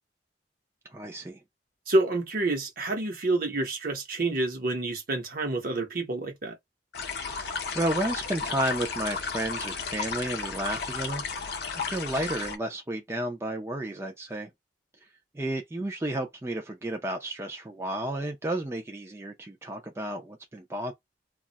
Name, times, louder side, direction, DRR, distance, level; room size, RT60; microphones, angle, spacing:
voice 1, 0.9-1.4 7.3-7.5 7.7-14.5 15.3-20.9, right 1 dB, 15° right, 0.4 m, -32 dB
voice 2, 1.9-6.6, right 2 dB, 55° right, 0.9 m, -28 dB
sound 1, 6.9-12.6, left 5 dB, 60° left, 0.6 m, -33 dB
2.3 x 2.0 x 3.8 m
head